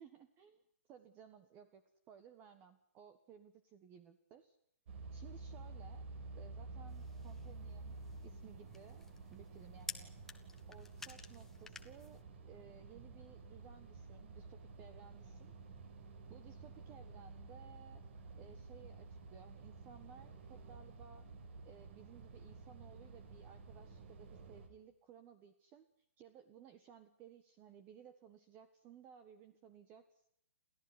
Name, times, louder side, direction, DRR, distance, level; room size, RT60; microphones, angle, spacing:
voice 1, 0.0-4.6 5.1-6.0 6.3-10.1 10.7-15.5 16.3-18.0 18.4-21.3 21.6-25.9 26.2-30.3, right 8 dB, 25° right, 12 dB, 1.5 m, -59 dB
sound 1, 4.9-24.7, right 3 dB, 50° right, 4.8 m, -52 dB
sound 2, 6.9-12.2, left 4 dB, 5° left, 1.5 m, -53 dB
29.5 x 14.5 x 9.8 m, 0.74 s
hypercardioid pair, 150°, 8 cm